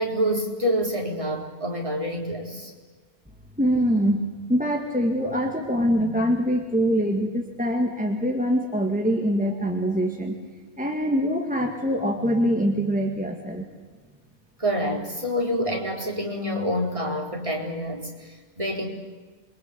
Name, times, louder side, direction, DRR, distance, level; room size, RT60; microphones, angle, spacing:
voice 1, 0.0-2.7 14.6-18.9, equal, 30° right, 0 dB, 4.6 m, -27 dB
voice 2, 3.6-4.2 4.5-10.4 10.8-13.6, equal, 5° right, 2 dB, 2.2 m, -24 dB
28.0 x 24.0 x 8.3 m, 1.4 s
omnidirectional pair, 1.1 m